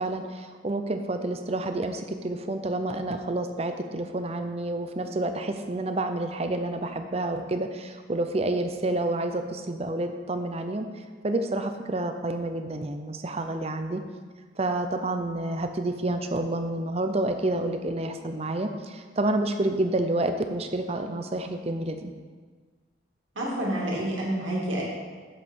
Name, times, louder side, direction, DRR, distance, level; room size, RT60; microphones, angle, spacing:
voice 1, 0.0-10.9 11.2-14.0 14.6-22.1, right 2 dB, 30° right, 7 dB, 0.5 m, -29 dB
voice 2, 23.4-24.8, right 1 dB, 80° right, -4 dB, 2.4 m, -28 dB
7.6 x 5.5 x 6.2 m, 1.5 s
head